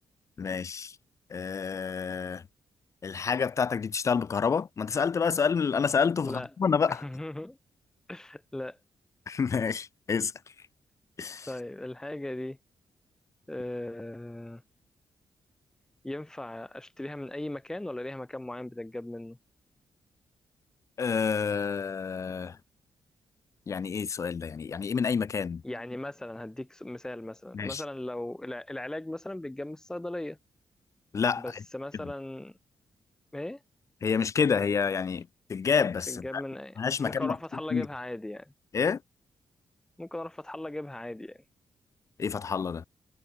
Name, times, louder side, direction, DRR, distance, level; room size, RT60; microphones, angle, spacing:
voice 1, 0.4-1.0 1.3-2.4 3.0-7.0 9.3-10.3 11.2-11.5 21.0-22.6 23.7-25.6 27.5-27.8 31.1-31.4 34.0-36.4 36.8-37.3 37.7-37.9 38.7-39.0 42.2-42.9, left 6 dB, 35° left, 4.3 m, -28 dB
voice 2, 6.9-7.6 8.1-8.8 11.5-12.6 13.5-14.6 16.0-19.4 25.6-30.4 31.4-32.6 33.3-33.6 36.1-38.5 40.0-41.4, left 1 dB, 5° left, 2.1 m, -38 dB
wide cardioid pair, 175°, 9 cm